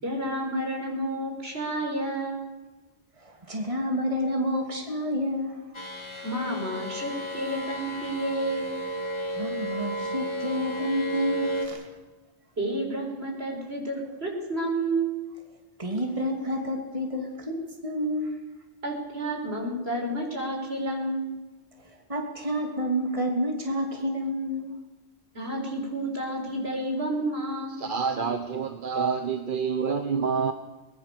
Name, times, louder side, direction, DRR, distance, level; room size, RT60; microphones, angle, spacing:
voice 1, 0.0-2.4 6.2-8.8 12.6-15.1 18.8-21.4 25.3-27.9, right 1 dB, 70° right, 0 dB, 6.0 m, -30 dB
voice 2, 3.2-5.6 9.4-11.9 15.8-18.4 21.8-24.8, equal, 30° right, 2 dB, 2.9 m, -29 dB
sound 1, 5.7-11.7, equal, 25° left, 3.2 m, -33 dB
voice 3, 27.8-30.5, right 5 dB, 50° right, 7 dB, 1.3 m, -27 dB
23.0 x 20.5 x 6.9 m, 1.2 s
omnidirectional pair, 1.1 m